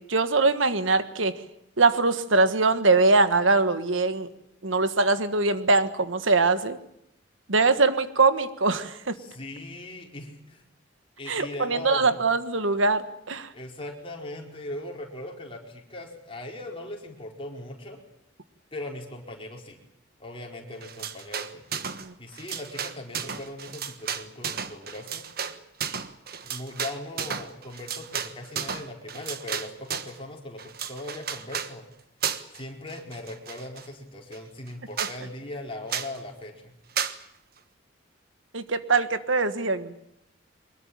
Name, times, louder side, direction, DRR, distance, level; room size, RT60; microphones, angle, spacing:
voice 1, 0.1-1.3 1.8-4.3 4.6-6.8 7.5-9.1 11.3-13.5 22.0-22.1 38.5-39.9, right 3 dB, 80° right, 11 dB, 1.6 m, -22 dB
voice 2, 9.2-10.6 11.2-12.2 13.5-18.0 18.7-19.8 20.2-21.6 22.2-25.2 26.4-31.9 32.5-36.7, left 1 dB, 30° left, 0 dB, 4.7 m, -39 dB
sound 1, 20.8-22.1 22.3-30.2 30.6-31.7 32.2-32.6 32.9-33.9 34.3-34.4 34.7-34.8 35.0-35.2 35.9-36.2 37.0-37.2, right 7 dB, 50° right, 1.4 m, -33 dB
23.5 x 21.5 x 8.8 m, 0.76 s
head